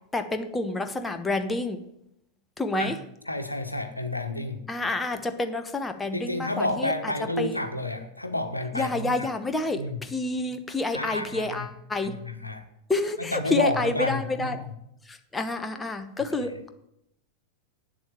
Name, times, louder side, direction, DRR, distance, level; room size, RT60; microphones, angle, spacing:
voice 1, 0.1-1.8 2.6-3.0 4.7-7.1 7.4-7.6 8.7-12.2 12.9-14.7 15.0-16.7, left 2 dB, 10° left, 8 dB, 1.1 m, -29 dB
voice 2, 3.3-4.6 6.1-9.1 9.7-10.0 10.9-11.6 12.0-12.6 13.3-14.5, left 1 dB, 85° left, 7 dB, 1.2 m, -30 dB
8.6 x 7.6 x 8.8 m, 0.79 s
figure-of-eight pair, 90°, 0 cm